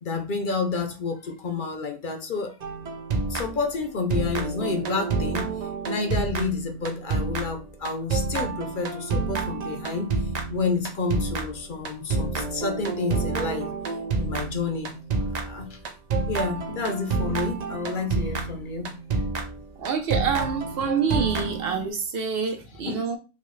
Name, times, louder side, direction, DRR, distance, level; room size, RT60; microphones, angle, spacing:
voice 1, 0.0-2.5 3.3-5.5 5.9-10.1 10.5-13.7 14.2-14.9 15.4-15.8 16.3-18.9 22.9-23.1, left 4 dB, 55° left, 0.8 m, -29 dB
sound 1, 2.6-3.8 4.1-21.9, right 4 dB, 50° right, 0.5 m, -29 dB
voice 2, 19.8-23.2, right 5 dB, 65° right, 0.9 m, -27 dB
4.0 x 2.4 x 3.1 m
omnidirectional pair, 1.1 m